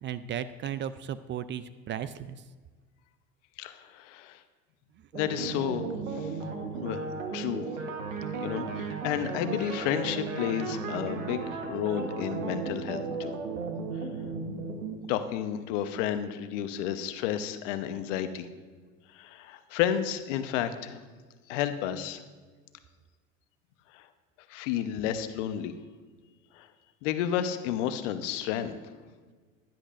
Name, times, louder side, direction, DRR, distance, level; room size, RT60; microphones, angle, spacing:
voice 1, 0.0-2.4, right 9 dB, 30° right, 15 dB, 0.4 m, -35 dB
voice 2, 3.6-4.4 5.1-6.5 6.8-7.1 7.3-7.7 8.4-13.4 15.1-18.5 19.1-21.0 21.5-22.2 23.9-24.1 24.5-25.7 26.6-26.7 27.0-28.8, left 10 dB, 70° left, 10 dB, 0.9 m, -31 dB
sound 1, 5.1-15.0, right 4 dB, 90° right, 1.3 m, -35 dB
16.0 x 10.5 x 2.5 m, 1.5 s
hypercardioid pair, 80°, 38 cm